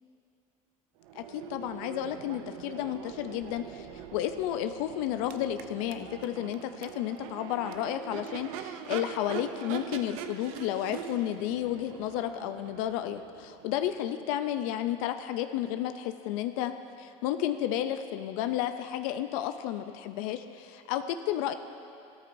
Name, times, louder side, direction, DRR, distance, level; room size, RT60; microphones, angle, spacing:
Crowd / Race car auto racing / Accelerating revving vroom, 1.0-14.8, right 9 dB, 85° right, 0.6 m, -43 dB
voice 1, 1.1-3.9 4.1-16.7 17.0-21.5, left 11 dB, 80° left, 9 dB, 0.5 m, -32 dB
14.0 x 13.0 x 2.6 m, 2.7 s
supercardioid pair, 90°, 18 cm